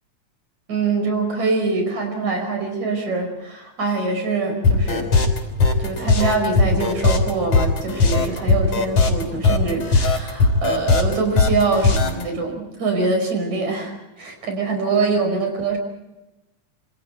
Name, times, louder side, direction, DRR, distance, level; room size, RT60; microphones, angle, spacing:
voice 1, 0.7-5.2 5.8-15.8, right 3 dB, 75° right, 5 dB, 6.6 m, -24 dB
sound 1, 4.6-12.2, left 3 dB, 60° left, 4.8 m, -18 dB
27.0 x 26.5 x 4.6 m, 0.96 s
omnidirectional pair, 3.3 m